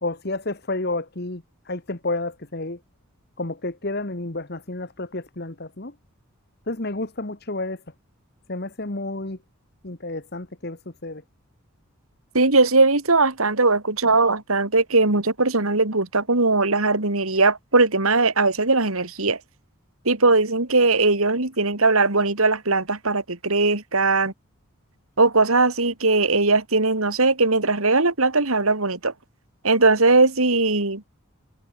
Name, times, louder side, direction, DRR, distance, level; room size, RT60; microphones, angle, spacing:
voice 1, 0.0-2.8 3.4-5.9 6.7-7.8 8.5-9.4 9.8-11.2, left 2 dB, 45° left, 1.6 m, -30 dB
voice 2, 12.3-19.4 20.0-24.3 25.2-29.1 29.6-31.2, right 3 dB, 80° right, 3.0 m, -19 dB
head